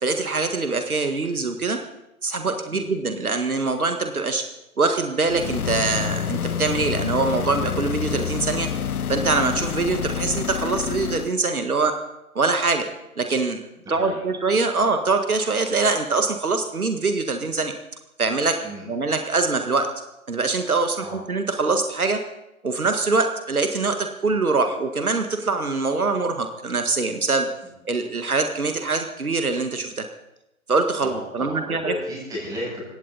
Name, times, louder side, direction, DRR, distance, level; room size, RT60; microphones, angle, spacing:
voice 1, 0.0-1.8 2.2-4.4 4.8-8.7 9.1-12.0 12.4-12.9 13.2-13.6 13.9-17.7 18.2-18.6 18.9-19.9 20.3-22.2 22.6-27.5 27.9-30.1 30.7-31.9, right 3 dB, 75° right, 6 dB, 1.8 m, -23 dB
sound 1, 5.3-11.4, left 7 dB, 75° left, 0.7 m, -28 dB
voice 2, 13.8-14.2 14.7-14.8 18.6-18.9 21.0-21.2 27.6-27.7 31.0-32.9, equal, 10° right, -5 dB, 7.4 m, -34 dB
21.0 x 16.5 x 4.1 m, 0.89 s
figure-of-eight pair, 140°, 44 cm